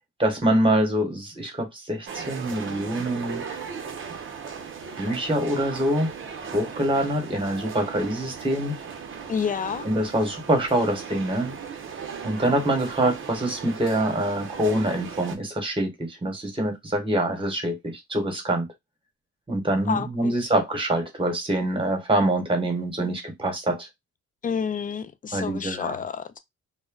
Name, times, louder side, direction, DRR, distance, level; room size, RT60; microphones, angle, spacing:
voice 1, 0.2-3.4 5.0-6.1 6.5-8.7 9.8-11.5 12.2-18.7 19.5-23.9 25.3-26.0, right 1 dB, 15° right, 1.2 m, -25 dB
sound 1, 2.1-15.4, right 6 dB, 40° right, 0.7 m, -37 dB
voice 2, 9.3-9.9 19.9-20.4 24.4-26.4, left 6 dB, 30° left, 0.4 m, -29 dB
2.2 x 2.1 x 3.7 m
cardioid pair, 90°, 30 cm